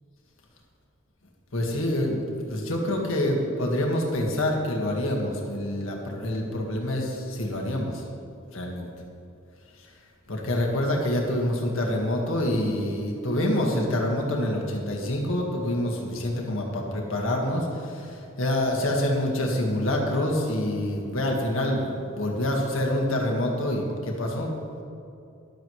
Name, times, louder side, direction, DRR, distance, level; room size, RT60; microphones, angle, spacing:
voice 1, 1.5-2.2 2.5-8.0 8.5-8.9 10.3-24.5, left 1 dB, 80° left, 0 dB, 1.8 m, -26 dB
13.5 x 11.5 x 3.2 m, 2.6 s
head